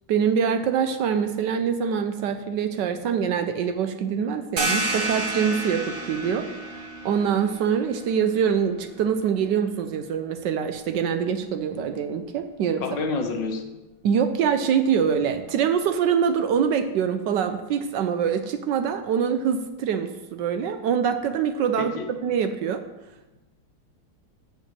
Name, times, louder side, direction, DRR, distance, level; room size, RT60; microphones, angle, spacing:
voice 1, 0.1-6.5 7.0-12.8 14.0-21.9 22.2-22.8, right 7 dB, 70° right, 9 dB, 1.1 m, -24 dB
sound 1, 4.6-9.9, right 2 dB, 55° right, 0.6 m, -31 dB
voice 2, 12.8-13.6 21.8-22.1, left 3 dB, 65° left, 4 dB, 1.6 m, -28 dB
6.7 x 6.0 x 7.4 m, 1.1 s
omnidirectional pair, 2.2 m